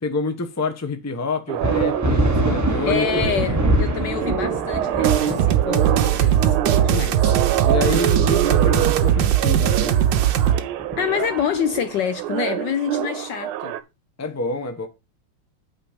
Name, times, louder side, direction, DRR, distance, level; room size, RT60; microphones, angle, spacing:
voice 1, 0.0-3.2 7.7-10.0 14.2-14.9, left 3 dB, 15° left, 0.6 m, -27 dB
sound 1, 1.5-13.8, right 11 dB, 85° right, 1.5 m, -26 dB
sound 2, 1.6-11.6, right 1 dB, 10° right, 0.8 m, -26 dB
voice 2, 2.8-6.6 6.8-7.3 11.0-13.7, left 9 dB, 70° left, 1.1 m, -27 dB
sound 3, 5.0-10.6, right 10 dB, 65° right, 1.4 m, -19 dB
8.7 x 5.2 x 5.0 m
omnidirectional pair, 2.3 m